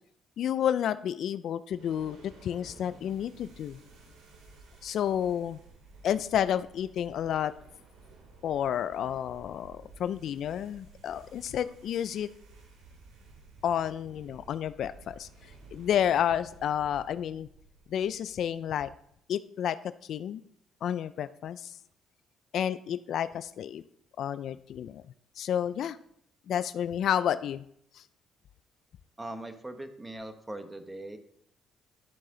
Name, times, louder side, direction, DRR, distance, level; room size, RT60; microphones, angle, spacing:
voice 1, 0.4-3.8 4.8-5.6 6.0-7.5 8.4-12.3 13.6-15.3 15.7-17.5 17.9-18.9 19.3-19.8 20.1-20.4 20.8-21.7 22.5-23.8 24.2-25.0 25.4-26.0 26.5-27.6 27.9-28.0, left 9 dB, 65° left, 14 dB, 0.4 m, -30 dB
sound 1, 1.7-19.1, right 3 dB, 85° right, 2.3 m, -54 dB
voice 2, 29.2-31.2, right 1 dB, 15° right, 8 dB, 1.3 m, -40 dB
12.0 x 7.4 x 3.9 m, 0.69 s
cardioid pair, 80°, 0 cm